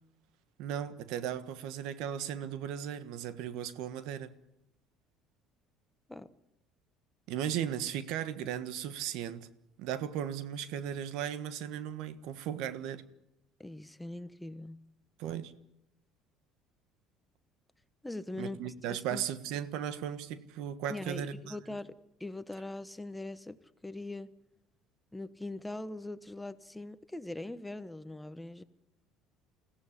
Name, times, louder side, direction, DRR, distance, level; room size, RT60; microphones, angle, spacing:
voice 1, 0.6-4.3 7.3-9.5 9.8-13.0 15.2-15.5 18.4-21.6, right 9 dB, 75° right, 1.4 m, -36 dB
voice 2, 13.6-14.8 18.0-19.2 20.9-23.6 23.8-24.3 25.1-28.6, left 2 dB, 5° left, 1.1 m, -41 dB
22.0 x 16.0 x 9.8 m
supercardioid pair, 100°, 0 cm